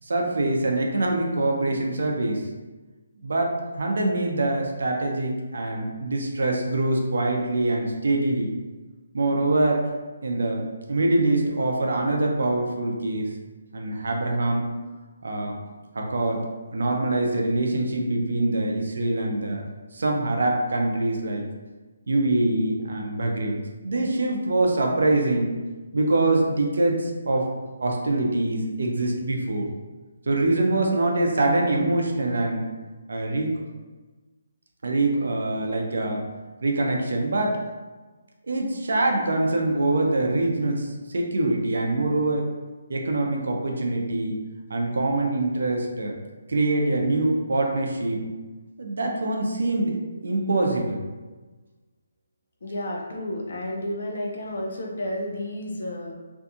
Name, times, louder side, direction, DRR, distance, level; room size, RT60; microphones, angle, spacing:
voice 1, 0.0-2.5 3.2-8.5 9.1-9.9 10.2-13.3 13.7-14.7 15.2-15.6 15.9-16.5 16.7-19.6 19.9-21.4 22.1-25.5 25.9-27.5 27.8-29.7 30.3-32.7 33.1-33.5 34.8-36.2 36.6-37.6 38.4-42.5 42.9-44.4 44.7-46.2 46.5-48.3 48.8-49.9 50.2-51.1, right 2 dB, 75° right, 1 dB, 0.5 m, -24 dB
voice 2, 52.6-56.1, left 1 dB, 60° left, -1 dB, 0.6 m, -31 dB
2.6 x 2.3 x 2.6 m, 1.3 s
hypercardioid pair, 165°, 0 cm